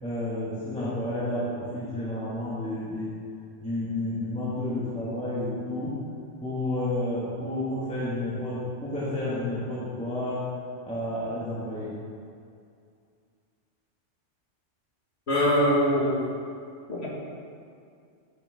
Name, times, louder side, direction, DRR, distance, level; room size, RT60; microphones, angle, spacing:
voice 1, 0.0-3.2 3.6-5.9 6.4-10.4 10.9-11.9, left 1 dB, 5° left, -10 dB, 1.9 m, -31 dB
voice 2, 15.3-16.1 16.9-17.1, equal, 60° left, -5 dB, 2.1 m, -22 dB
10.5 x 6.8 x 3.6 m, 2.4 s
omnidirectional pair, 1.3 m